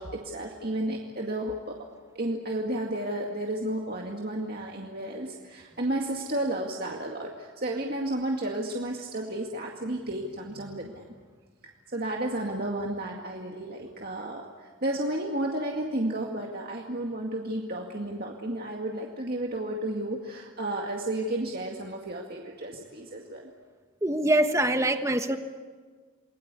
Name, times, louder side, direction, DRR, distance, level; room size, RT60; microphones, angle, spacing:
voice 1, 0.0-1.8 2.1-11.0 11.9-23.5, right 1 dB, 50° right, 0 dB, 2.1 m, -32 dB
voice 2, 24.0-25.4, right 1 dB, 15° right, 7 dB, 1.3 m, -24 dB
29.5 x 21.0 x 8.4 m, 1.5 s
head